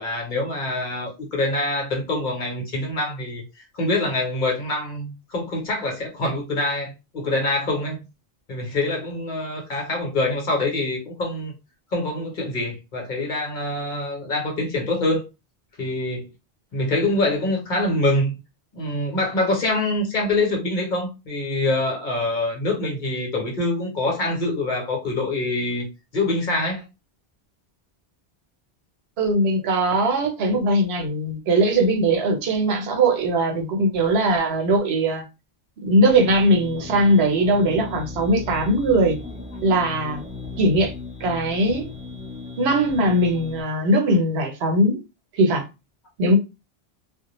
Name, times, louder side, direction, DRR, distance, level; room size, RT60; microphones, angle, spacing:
voice 1, 0.0-3.4 3.7-8.0 8.5-11.5 11.9-15.2 15.8-16.3 16.7-18.4 18.7-25.9 26.1-26.8 32.9-33.0, left 2 dB, 50° left, 0.9 m, -25 dB
voice 2, 29.2-35.2 35.8-39.2 39.6-40.2 40.6-40.9 41.2-41.9 42.6-45.0 45.3-45.6 46.2-46.4, right 1 dB, 80° right, 0.9 m, -20 dB
sound 1, 36.0-43.6, left 4 dB, 10° right, 0.5 m, -36 dB
2.2 x 2.0 x 2.9 m
omnidirectional pair, 1.0 m